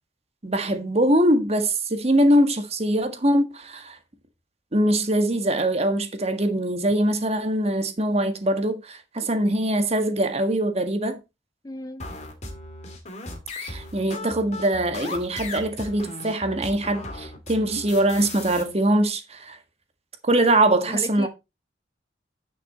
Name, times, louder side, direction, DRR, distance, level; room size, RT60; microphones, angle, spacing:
voice 1, 0.4-4.0 4.7-11.2 13.6-19.6 20.3-21.3, right 1 dB, 35° right, 1.6 m, -22 dB
voice 2, 11.6-12.1 20.9-21.3, left 1 dB, 20° left, 0.6 m, -34 dB
sound 1, 12.0-18.6, left 2 dB, 40° left, 2.5 m, -37 dB
10.5 x 6.3 x 4.2 m
head